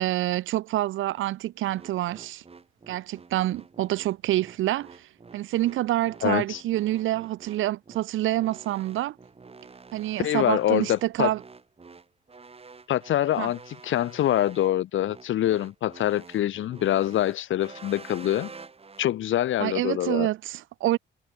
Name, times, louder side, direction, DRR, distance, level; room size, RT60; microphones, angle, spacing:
voice 1, 0.0-2.4 2.9-5.1 5.3-9.2 9.9-11.4 13.4-13.5 19.6-21.0, right 15 dB, 80° right, 1.2 m, -27 dB
sound 1, 1.7-19.1, right 4 dB, 30° right, 6.4 m, -48 dB
voice 2, 6.2-6.6 10.2-11.3 12.9-18.5 19.0-20.3, left 12 dB, 75° left, 4.0 m, -25 dB
cardioid pair, 90°, 20 cm